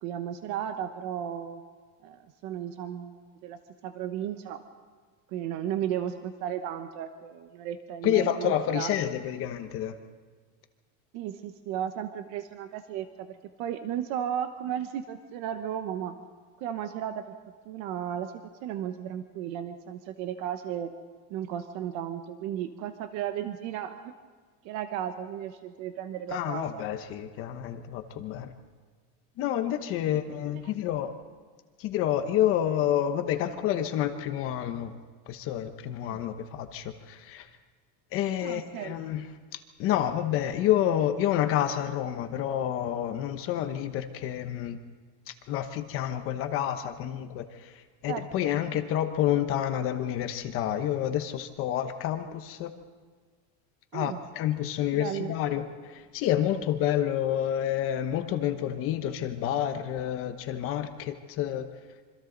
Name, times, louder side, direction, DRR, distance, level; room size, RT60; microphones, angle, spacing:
voice 1, 0.0-1.6 2.0-4.6 5.3-8.9 11.1-13.3 13.6-16.1 16.6-17.3 17.7-18.3 18.6-20.9 21.3-24.1 24.6-26.8 36.0-36.2 38.4-38.9 48.1-48.3 48.7-48.8 53.9-54.2 55.0-55.3, right 10 dB, 50° right, 8 dB, 1.1 m, -34 dB
voice 2, 8.0-9.9 26.3-28.5 29.4-31.1 31.8-34.9 35.3-37.5 38.1-44.8 45.3-52.7 53.9-61.7, left 11 dB, 40° left, 8 dB, 1.0 m, -29 dB
26.5 x 25.5 x 4.0 m, 1.5 s
cardioid pair, 175°, 36 cm